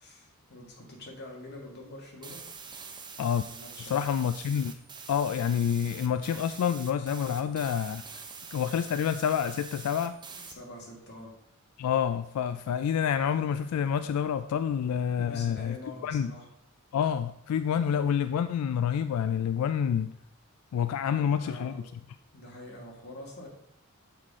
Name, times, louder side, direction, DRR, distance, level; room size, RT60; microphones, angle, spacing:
voice 1, 0.0-2.4 3.4-4.1 10.4-11.3 14.9-16.5 21.1-21.9 22.3-23.5, left 1 dB, 50° left, -1 dB, 1.8 m, -46 dB
sound 1, 2.2-10.5, right 5 dB, 20° right, 0.6 m, -45 dB
voice 2, 3.8-4.7 5.1-8.0 8.5-10.1 11.8-15.8 16.0-16.3 16.9-20.1 20.7-21.8, left 8 dB, 90° left, 12 dB, 0.3 m, -28 dB
6.5 x 5.8 x 3.6 m, 0.76 s
head